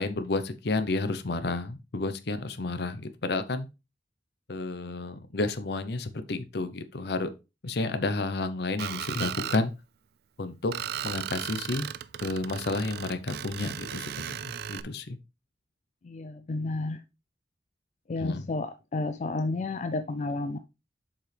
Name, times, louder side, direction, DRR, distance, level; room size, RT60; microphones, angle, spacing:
voice 1, 0.0-3.7 4.5-7.3 7.6-9.7 10.4-10.8 11.0-11.9 12.2-15.2 18.2-18.4, left 3 dB, 65° left, 0.8 m, -31 dB
Screech, 8.8-9.6 10.7-14.8, right 10 dB, 60° right, 0.4 m, -36 dB
voice 2, 16.0-17.0 18.1-20.6, left 2 dB, 45° left, 0.4 m, -31 dB
7.4 x 4.9 x 3.3 m
head